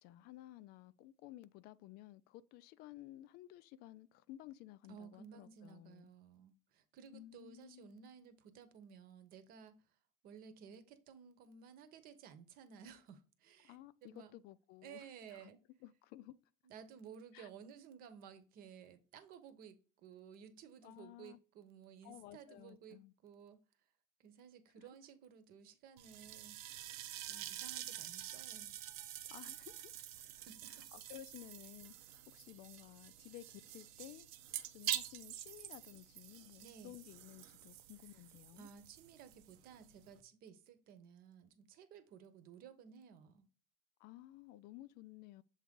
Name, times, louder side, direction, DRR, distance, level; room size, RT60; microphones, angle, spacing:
voice 1, 0.0-6.1 7.1-7.9 13.6-15.5 15.8-16.4 17.3-17.5 20.8-21.4 22.0-23.1 24.8-24.9 29.3-30.2 30.7-34.3 34.7-38.7 44.0-45.4, left 15 dB, 60° left, 0.4 m, -55 dB
voice 2, 4.9-9.8 10.2-14.3 14.8-15.6 16.6-23.6 24.2-26.6 27.0-28.7 30.2-30.9 36.6-36.9 38.1-38.2 38.6-43.5, right 7 dB, 55° right, 1.0 m, -56 dB
sound 1, 26.0-40.2, right 12 dB, 85° right, 0.7 m, -47 dB
7.1 x 3.6 x 3.7 m
cardioid pair, 140°, 19 cm